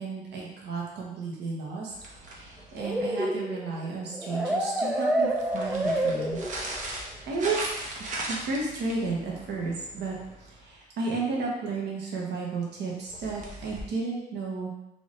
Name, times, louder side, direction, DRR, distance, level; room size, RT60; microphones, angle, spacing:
voice 1, 0.0-1.9 2.2-6.4 7.3-14.7, right 3 dB, 65° right, -3 dB, 1.1 m, -33 dB
sound 1, 1.9-3.1 5.2-10.8 13.1-13.8, right 1 dB, 40° right, 0.8 m, -39 dB
sound 2, 2.8-6.9, right 1 dB, 5° right, 0.4 m, -28 dB
3.4 x 2.7 x 3.2 m, 0.87 s
supercardioid pair, 85°, 19 cm